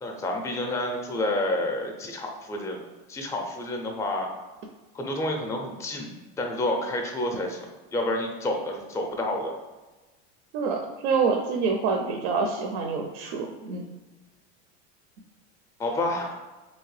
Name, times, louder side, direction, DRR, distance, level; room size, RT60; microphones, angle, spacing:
voice 1, 0.0-2.8 3.1-4.3 4.9-6.1 6.4-7.7 7.9-9.5 15.8-16.4, left 1 dB, 10° left, 2 dB, 0.4 m, -29 dB
voice 2, 10.5-13.8, right 5 dB, 75° right, 2 dB, 0.5 m, -26 dB
2.9 x 2.8 x 3.1 m, 1.2 s
supercardioid pair, 125°, 33 cm